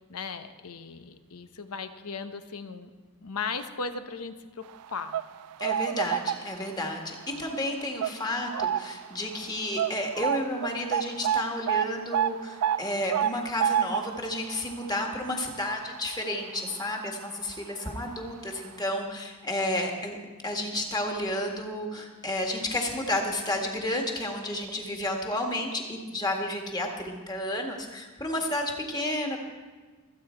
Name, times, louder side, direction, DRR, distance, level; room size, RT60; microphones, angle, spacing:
voice 1, 0.0-2.9 3.2-5.2, left 5 dB, 85° left, 9 dB, 1.0 m, -37 dB
sound 1, 4.8-6.8 7.2-7.5 8.0-9.1 9.4-9.5 9.8-16.8 17.1-17.3 18.1-18.2 18.6-18.7, right 9 dB, 85° right, 0.3 m, -30 dB
voice 2, 5.6-20.2 20.4-29.4, left 1 dB, 20° left, 2 dB, 1.8 m, -31 dB
26.5 x 8.8 x 4.5 m, 1.4 s
head